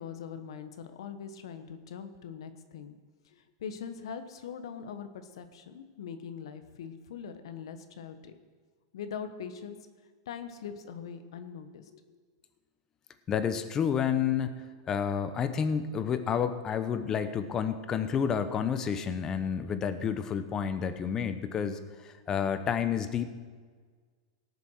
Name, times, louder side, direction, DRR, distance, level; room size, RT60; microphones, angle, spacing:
voice 1, 0.0-3.0 3.3-8.3 8.9-9.8 10.3-12.2, left 7 dB, 80° left, 9 dB, 1.2 m, -42 dB
voice 2, 13.3-23.3, left 7 dB, 20° left, 10 dB, 0.8 m, -30 dB
18.0 x 6.9 x 6.3 m, 1.5 s
supercardioid pair, 150°, 3 cm